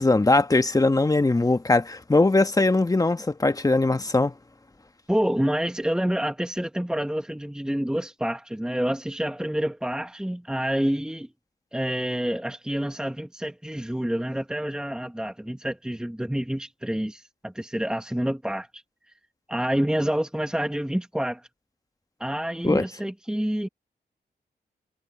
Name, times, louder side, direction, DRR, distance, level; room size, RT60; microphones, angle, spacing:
voice 1, 0.0-4.3 22.6-22.8, left 2 dB, 20° left, 1.4 m, -21 dB
voice 2, 5.1-11.3 11.7-18.8 19.5-21.5 22.2-23.7, equal, 5° right, 1.6 m, -28 dB
cardioid pair, 65°, 17 cm